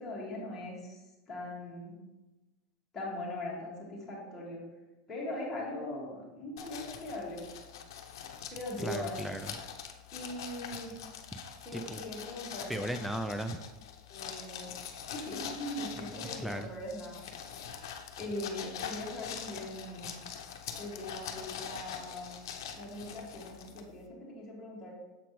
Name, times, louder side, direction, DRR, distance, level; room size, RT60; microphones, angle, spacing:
voice 1, 0.0-2.0 2.9-4.6 5.1-7.4 8.5-9.2 10.1-11.0 11.6-12.8 14.1-14.7 15.1-17.2 18.2-20.1 20.8-22.4 22.7-24.9, left 1 dB, 15° left, -5 dB, 1.9 m, -40 dB
sound 1, 6.6-24.1, left 8 dB, 80° left, 0.6 m, -44 dB
voice 2, 8.8-9.5 11.3-11.4 11.7-12.0 12.7-13.6 16.1-16.7, right 1 dB, ahead, 7 dB, 0.3 m, -36 dB
7.1 x 4.9 x 3.0 m, 1.1 s
supercardioid pair, 150°, 2 cm